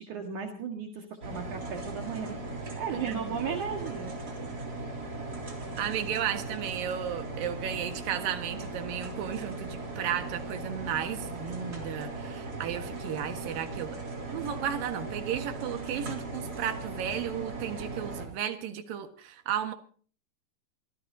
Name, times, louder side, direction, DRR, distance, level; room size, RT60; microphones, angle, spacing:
voice 1, 0.0-4.1, right 6 dB, 65° right, 3 dB, 3.2 m, -36 dB
sound 1, 1.2-18.3, right 2 dB, 30° right, 3.8 m, -38 dB
voice 2, 2.9-3.2 5.8-14.0 14.3-19.7, right 9 dB, 85° right, 7 dB, 3.3 m, -34 dB
25.5 x 16.0 x 2.7 m, 0.43 s
omnidirectional pair, 3.9 m